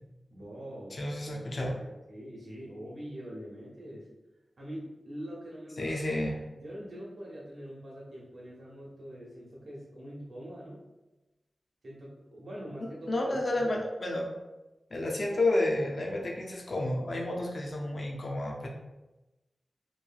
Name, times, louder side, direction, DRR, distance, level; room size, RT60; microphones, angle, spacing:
voice 1, 0.3-4.1 4.6-5.9 6.5-10.8 11.8-13.8, equal, 65° right, -5 dB, 0.9 m, -44 dB
voice 2, 0.9-1.8 5.8-6.4 13.1-14.3 14.9-18.7, left 1 dB, 50° left, -1 dB, 0.4 m, -30 dB
3.0 x 2.6 x 2.2 m, 1.0 s
wide cardioid pair, 115°, 0 cm